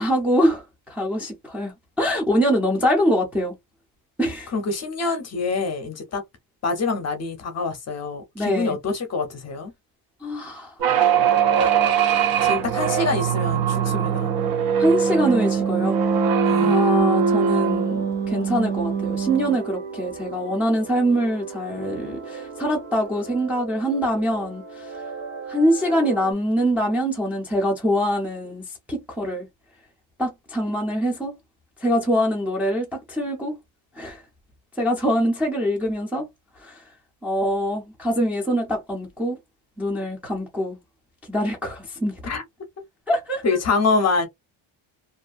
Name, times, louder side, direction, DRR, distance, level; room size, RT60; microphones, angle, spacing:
voice 1, 0.0-3.5 4.2-4.5 8.3-8.8 10.2-10.7 11.6-11.7 12.2-12.5 14.8-16.0 16.6-25.0 25.5-29.5 30.2-31.3 31.8-33.6 34.0-34.2 34.8-36.3 36.6-36.9 37.2-39.4 39.8-40.8 41.3-42.2 43.1-43.4, equal, 5° right, 0.5 m, -24 dB
voice 2, 4.5-6.2 6.6-9.7 12.4-14.3 16.4-16.8 42.3-42.4 43.4-44.3, left 4 dB, 35° left, 0.7 m, -25 dB
sound 1, 10.8-19.6, right 7 dB, 50° right, 0.6 m, -21 dB
sound 2, 13.1-26.3, right 4 dB, 80° right, 0.8 m, -37 dB
2.6 x 2.5 x 2.5 m
cardioid pair, 180°, 46 cm